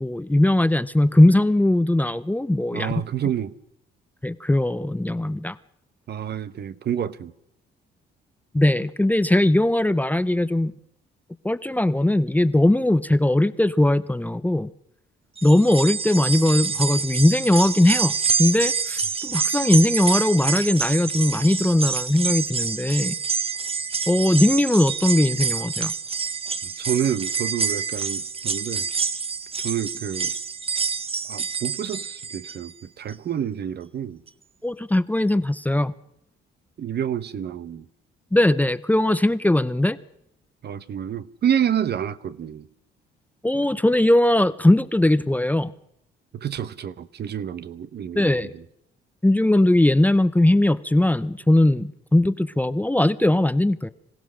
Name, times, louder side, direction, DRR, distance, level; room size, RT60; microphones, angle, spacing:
voice 1, 0.0-2.9 4.2-5.5 8.5-10.7 11.4-14.7 15.4-18.1 18.4-23.1 24.1-25.9 34.6-35.9 38.3-40.0 43.4-45.7 48.1-48.5 49.2-53.9, left 1 dB, 10° left, 0.7 m, -19 dB
voice 2, 2.7-3.5 6.1-7.3 26.8-28.9 29.6-30.3 31.3-34.2 36.8-37.9 40.6-42.7 46.3-48.3 48.5-48.6, right 9 dB, 55° right, 1.0 m, -28 dB
sound 1, 15.4-32.7 33.1-33.2 34.3-34.4, right 5 dB, 30° right, 1.0 m, -27 dB
26.0 x 16.0 x 6.4 m
cardioid pair, 90°, 20 cm